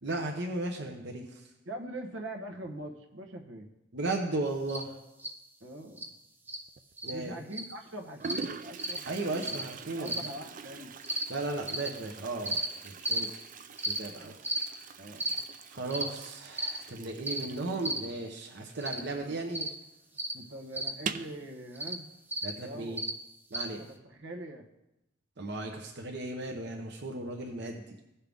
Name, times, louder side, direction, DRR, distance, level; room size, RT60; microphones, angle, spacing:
voice 1, 0.0-1.4 3.9-4.9 7.0-7.3 9.0-10.2 11.3-13.4 14.0-14.3 15.7-19.7 22.4-23.0 23.5-23.8 25.4-27.8, right 2 dB, 60° right, 2 dB, 0.9 m, -35 dB
voice 2, 1.6-3.7 5.6-6.1 7.1-9.6 10.0-10.9 15.0-15.4 18.9-19.4 20.3-22.1 22.6-23.0 23.8-24.7, right 1 dB, 85° right, 3 dB, 1.2 m, -42 dB
sound 1, 4.7-4.8 5.2-5.3 6.0-6.1 6.5-6.6 7.0-7.1 7.5-7.7 8.2-8.4 8.8-9.0 9.4-9.6 10.0-10.3 11.0-11.2 11.7-11.9 12.4-12.7 13.0-13.2 13.8-14.0 14.4-14.6 15.2-15.4 15.9-16.1 16.6-16.8 17.2-17.5 17.8-18.1 18.8-19.0 19.5-19.7 20.2-20.3 20.7-20.9 21.8-21.9 22.3-22.5 23.0-23.1 23.5-23.7, right 1 dB, 10° right, 0.7 m, -33 dB
Toilet flush, 6.7-7.2 7.9-8.0 8.2-19.5 19.7-19.8 20.2-20.3 20.9-21.4, right 6 dB, 45° right, 0.4 m, -44 dB
16.5 x 5.6 x 3.5 m, 0.91 s
head